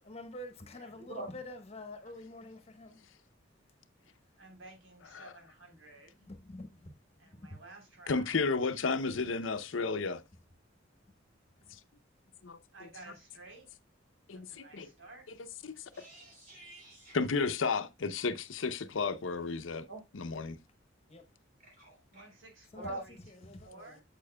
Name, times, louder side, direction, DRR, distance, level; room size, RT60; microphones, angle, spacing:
voice 1, 0.0-3.0 6.3-6.9 7.3-7.6 11.7-11.8 21.1-21.3 22.7-24.0, left 1 dB, 35° left, 1.1 m, -47 dB
voice 2, 4.4-6.3 7.2-8.5 12.7-13.7 14.3-15.3 22.1-23.2 23.6-24.0, right 2 dB, 85° right, 3.6 m, -54 dB
voice 3, 8.1-10.2 12.4-12.6 14.3-14.9 15.6-15.7 17.1-19.9 20.1-20.6, left 4 dB, 80° left, 0.7 m, -32 dB
voice 4, 15.9-17.2 19.9-20.0 21.6-22.2 22.8-23.0, right 2 dB, 45° right, 3.3 m, -44 dB
8.5 x 7.5 x 2.2 m
head